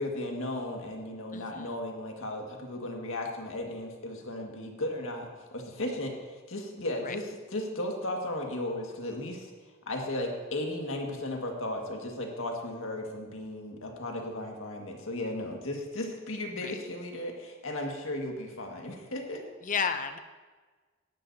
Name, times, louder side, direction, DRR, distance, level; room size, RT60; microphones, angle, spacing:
voice 1, 0.0-5.3 5.5-6.1 6.5-9.5 9.9-19.4, left 1 dB, 80° left, 1 dB, 1.9 m, -35 dB
voice 2, 1.3-1.8 7.0-7.2 16.6-16.7 19.6-20.2, left 6 dB, 40° left, 9 dB, 0.6 m, -32 dB
17.0 x 11.5 x 2.8 m, 1.4 s
head